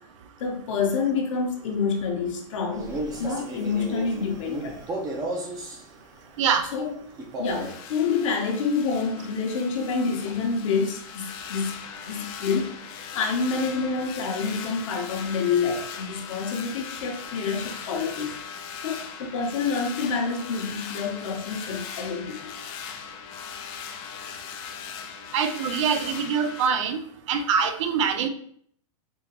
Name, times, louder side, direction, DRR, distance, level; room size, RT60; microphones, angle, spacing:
voice 1, 0.4-4.8 6.6-7.0 7.4-12.9 13.1-18.3 18.8-22.5, left 5 dB, 65° left, 2 dB, 0.9 m, -28 dB
Male speech man speaking, 2.7-5.8 7.2-7.8, right 1 dB, 20° right, 0.7 m, -33 dB
voice 2, 6.4-6.7 25.3-27.0 27.3-28.3, right 6 dB, 60° right, 9 dB, 0.5 m, -24 dB
sound 1, 7.4-26.7, left 7 dB, 45° left, 0.4 m, -39 dB
3.7 x 2.8 x 2.8 m, 0.62 s
hypercardioid pair, 135°, 17 cm